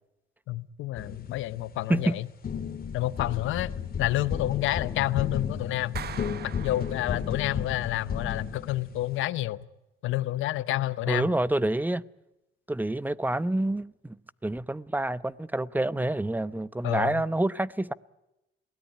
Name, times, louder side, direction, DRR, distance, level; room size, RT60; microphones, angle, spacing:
voice 1, 0.5-2.3 2.9-6.0 6.6-9.6 10.0-11.3 16.8-17.2, left 15 dB, 90° left, 0.8 m, -29 dB
sound 1, 0.9-2.1 2.4-9.2, left 7 dB, 50° left, 2.0 m, -34 dB
Clapping, 6.0-7.6, right 9 dB, 55° right, 0.9 m, -42 dB
voice 2, 11.1-12.0 12.7-14.2 14.4-17.9, right 1 dB, 10° right, 0.8 m, -27 dB
22.5 x 17.5 x 9.8 m
cardioid pair, 90°, 20 cm